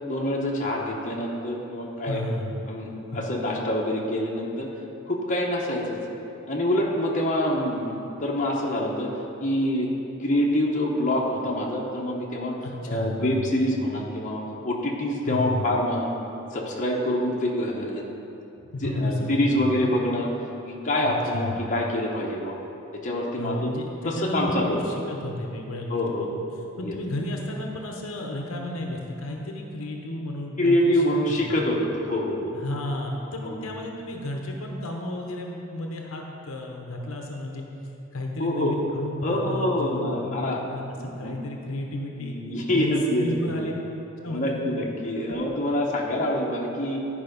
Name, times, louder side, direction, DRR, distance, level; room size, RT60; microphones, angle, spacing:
voice 1, 0.1-2.2 2.7-2.9 3.1-4.7 5.1-6.0 6.5-9.1 9.4-9.9 10.2-12.6 12.9-16.1 16.5-18.0 18.8-20.3 20.7-22.6 23.0-23.7 24.0-24.8 25.9-26.3 26.8-26.9 30.6-32.7 33.4-33.6 38.4-38.7 39.2-40.6 40.9-41.3 42.2-43.3 43.6-43.7 44.3-47.0, left 1 dB, 35° left, -2 dB, 1.0 m, -26 dB
voice 2, 2.0-2.5 12.6-13.5 15.3-15.7 18.6-20.0 21.0-21.7 23.4-26.4 26.8-31.0 31.5-31.7 32.5-37.6 38.1-42.4 42.7-43.7 44.2-44.7, left 1 dB, 70° left, 1 dB, 0.9 m, -32 dB
11.0 x 5.1 x 5.2 m, 2.9 s
head